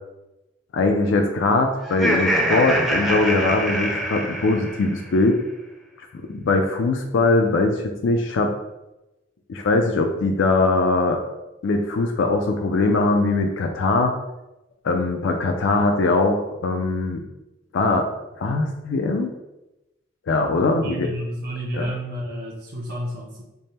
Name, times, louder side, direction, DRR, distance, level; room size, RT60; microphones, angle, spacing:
voice 1, 0.7-5.4 6.3-8.5 9.5-11.2 11.6-14.1 14.8-17.2 17.7-18.1 18.4-19.3 20.3-21.1 21.7-21.9, left 3 dB, 70° left, 4 dB, 0.4 m, -21 dB
Laughter, 1.8-5.1, equal, ahead, 0.5 m, -24 dB
voice 2, 20.8-23.4, equal, 55° right, -5 dB, 0.6 m, -30 dB
3.4 x 2.1 x 4.1 m, 0.97 s
head